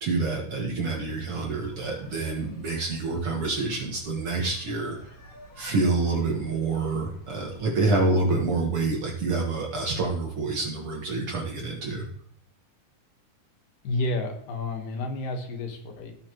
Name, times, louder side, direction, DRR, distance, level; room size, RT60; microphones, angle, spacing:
voice 1, 0.0-5.1 5.6-12.1, right 3 dB, 55° right, -1 dB, 1.8 m, -27 dB
sound 1, 0.8-8.6, equal, 45° left, 1.1 m, -50 dB
voice 2, 13.8-16.2, left 2 dB, 80° left, 3 dB, 2.9 m, -30 dB
16.5 x 5.7 x 2.9 m, 0.69 s
omnidirectional pair, 3.8 m